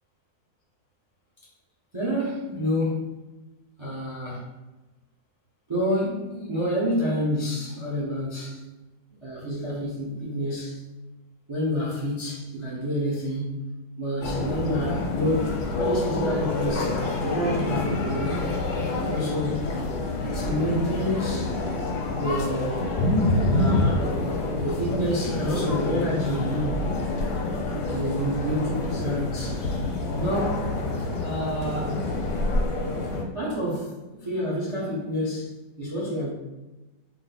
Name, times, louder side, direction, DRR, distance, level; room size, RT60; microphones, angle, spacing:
voice 1, 1.9-3.1 3.8-4.4 5.7-8.6 9.2-10.8 11.5-13.6 14.0-18.5 19.0-19.8 20.2-21.6 22.1-22.9 23.5-24.2 24.6-26.9 27.9-29.7 30.2-30.7 31.2-32.1 33.3-36.3, equal, 30° right, -5 dB, 0.5 m, -28 dB
sound 1, 14.2-33.2, left 2 dB, 55° left, 0.9 m, -27 dB
4.6 x 2.1 x 3.9 m, 1.1 s
omnidirectional pair, 2.1 m